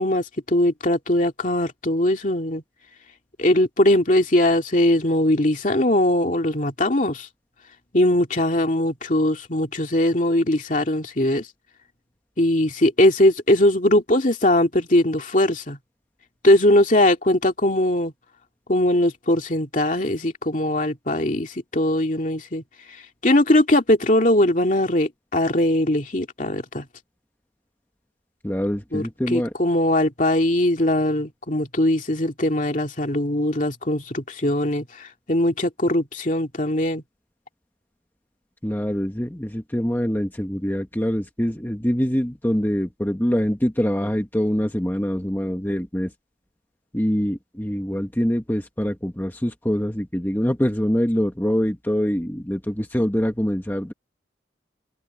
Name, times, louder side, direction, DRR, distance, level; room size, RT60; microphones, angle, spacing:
voice 1, 0.0-2.6 3.4-7.3 7.9-11.5 12.4-15.8 16.4-18.1 18.7-22.6 23.2-26.8 28.9-29.0 29.3-37.0, left 1 dB, 40° left, 2.5 m, -20 dB
voice 2, 28.4-29.5 38.6-46.1 46.9-53.9, equal, 10° left, 1.3 m, -24 dB
open air
head